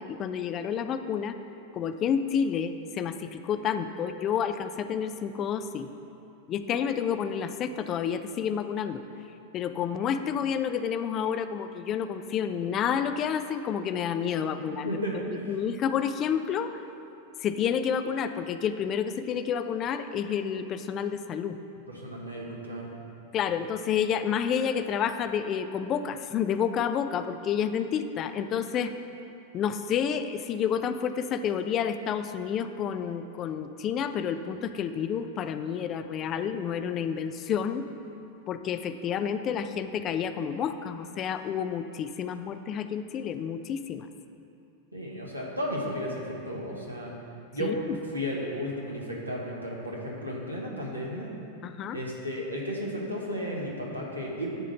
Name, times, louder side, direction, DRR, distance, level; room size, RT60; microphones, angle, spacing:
voice 1, 0.0-1.4 1.7-5.9 6.5-9.0 9.5-15.0 15.5-16.7 17.4-21.6 23.3-28.9 29.5-37.9 38.5-44.1 47.6-48.0 51.6-52.0, left 8 dB, 30° left, 10 dB, 0.4 m, -29 dB
voice 2, 14.8-15.5 21.9-22.9 44.9-47.1 47.5-47.7 48.0-51.3 51.9-54.5, equal, 85° right, -4 dB, 1.4 m, -34 dB
9.8 x 3.8 x 6.9 m, 2.7 s
figure-of-eight pair, 90°, 0 cm